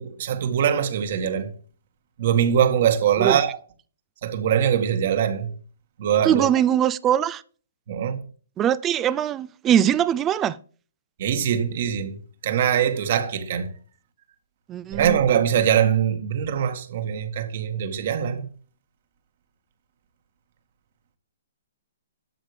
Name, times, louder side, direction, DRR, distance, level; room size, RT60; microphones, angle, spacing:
voice 1, 0.0-1.5 2.2-3.5 4.2-5.5 6.0-6.5 7.9-8.2 11.2-12.2 12.4-13.7 14.9-18.5, right 9 dB, 55° right, 1.8 m, -22 dB
voice 2, 6.2-7.4 8.6-10.6 14.7-15.2, right 10 dB, 20° right, 0.5 m, -21 dB
12.5 x 8.1 x 3.4 m
hypercardioid pair, 130°, 0 cm